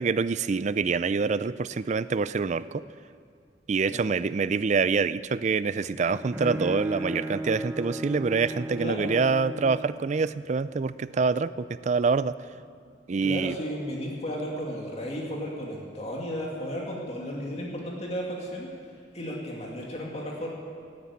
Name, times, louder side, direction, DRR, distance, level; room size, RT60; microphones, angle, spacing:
voice 1, 0.0-2.8 3.7-12.4 13.1-13.6, right 4 dB, 40° right, 16 dB, 0.4 m, -26 dB
Bowed string instrument, 5.8-10.0, right 1 dB, 15° right, 0.9 m, -35 dB
voice 2, 8.8-9.2 13.2-18.7 19.1-20.5, equal, 35° left, -2 dB, 2.2 m, -34 dB
17.5 x 9.6 x 8.4 m, 2.3 s
head